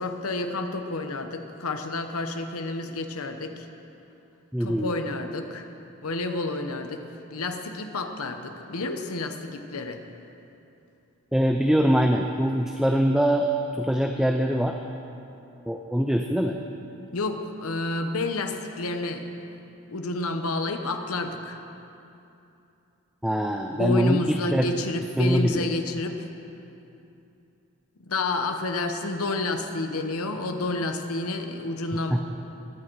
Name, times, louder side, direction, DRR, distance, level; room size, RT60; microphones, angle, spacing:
voice 1, 0.0-3.7 4.6-5.7 6.0-7.0 7.3-10.0 17.1-19.6 19.9-21.6 23.7-26.3 28.0-32.2, left 2 dB, 90° left, 6 dB, 1.0 m, -30 dB
voice 2, 4.5-4.9 11.3-14.8 15.7-16.6 23.2-24.7 25.2-25.7 32.1-32.2, equal, 5° right, 3 dB, 0.4 m, -23 dB
21.0 x 8.9 x 4.7 m, 2.8 s
head